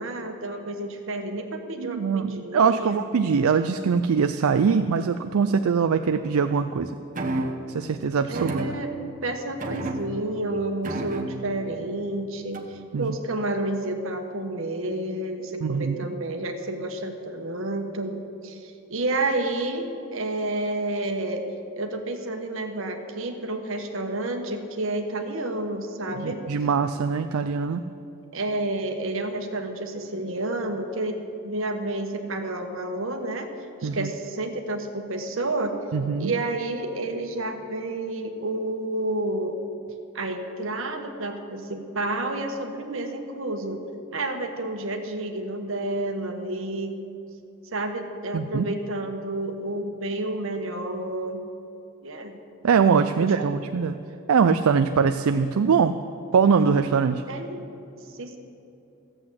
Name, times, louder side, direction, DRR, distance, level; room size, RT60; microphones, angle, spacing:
voice 1, 0.0-3.0 8.3-8.9 9.2-21.5 21.8-26.4 28.3-31.2 31.4-33.5 33.8-35.7 36.2-39.6 40.1-43.8 44.1-46.9 47.7-51.4 52.0-52.4 53.2-53.6 57.3-57.7 58.1-58.4, right 2 dB, 65° right, 5 dB, 1.2 m, -30 dB
voice 2, 1.8-6.9 7.7-8.7 12.9-13.1 15.6-16.0 26.2-27.8 33.8-34.1 35.9-36.3 48.3-48.6 52.6-54.0 54.3-56.0 56.3-57.2, right 6 dB, 80° right, 9 dB, 0.4 m, -22 dB
sound 1, 7.1-7.7 8.3-9.2 9.6-10.4 10.8-11.6 12.5-12.9, right 1 dB, 35° right, 1.0 m, -31 dB
14.0 x 7.8 x 7.6 m, 2.7 s
head